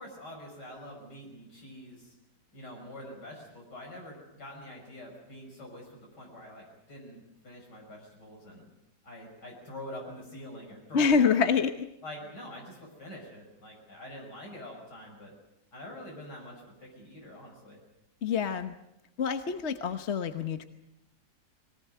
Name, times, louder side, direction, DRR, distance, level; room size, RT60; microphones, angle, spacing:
voice 1, 0.0-2.1 2.5-8.6 9.0-11.4 12.0-15.3 15.7-17.8, left 1 dB, 85° left, -1 dB, 6.5 m, -45 dB
voice 2, 10.9-11.9 18.2-18.7 19.2-20.6, left 6 dB, 45° left, 9 dB, 1.1 m, -26 dB
22.0 x 18.5 x 9.3 m, 0.85 s
omnidirectional pair, 1.8 m